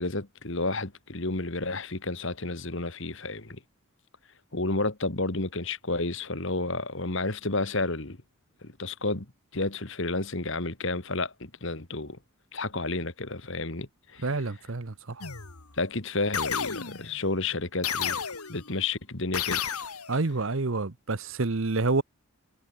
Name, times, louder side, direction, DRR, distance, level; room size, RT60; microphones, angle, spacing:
voice 1, 0.0-3.6 4.5-8.2 8.6-9.3 9.5-12.2 12.5-14.3 15.8-18.2 18.5-19.6, left 2 dB, 55° left, 2.1 m, -31 dB
voice 2, 14.2-15.2 20.1-22.0, right 3 dB, 60° right, 1.0 m, -28 dB
sound 1, 15.2-15.7 16.3-17.2 17.8-18.7 19.3-20.2, left 7 dB, 90° left, 3.0 m, -32 dB
head